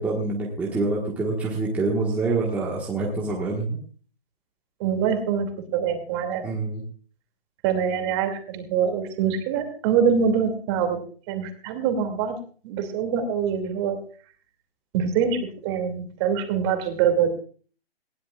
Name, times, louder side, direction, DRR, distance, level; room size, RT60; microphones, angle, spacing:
voice 1, 0.0-3.8 6.4-6.8, right 3 dB, 5° right, -4 dB, 1.5 m, -26 dB
voice 2, 4.8-6.4 7.6-11.0 11.3-12.4 12.6-14.0 14.9-17.3, right 7 dB, 25° right, 5 dB, 2.5 m, -24 dB
19.5 x 16.0 x 2.4 m, 0.42 s
hypercardioid pair, 155°, 31 cm